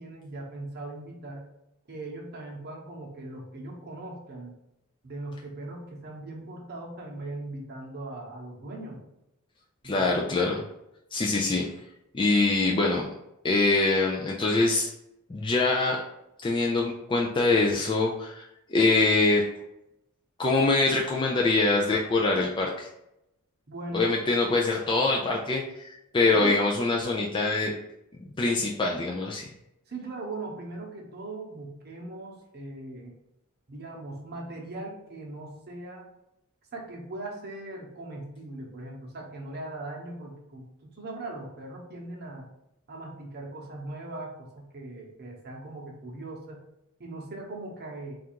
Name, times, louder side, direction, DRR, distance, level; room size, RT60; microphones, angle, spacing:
voice 1, 0.0-1.5 1.9-4.5 5.0-9.0 9.8-10.3 23.7-24.1 26.3-26.6 29.9-33.1 33.7-36.1 36.7-42.5 42.9-46.6 47.0-48.2, right 2 dB, 45° right, 0 dB, 0.9 m, -39 dB
voice 2, 9.8-10.6 11.1-11.6 12.1-13.0 13.4-14.9 15.3-16.0 16.4-19.4 20.4-22.9 23.9-27.7 28.4-29.5, left 3 dB, 20° left, -2 dB, 0.4 m, -24 dB
3.6 x 2.5 x 4.5 m, 0.85 s
head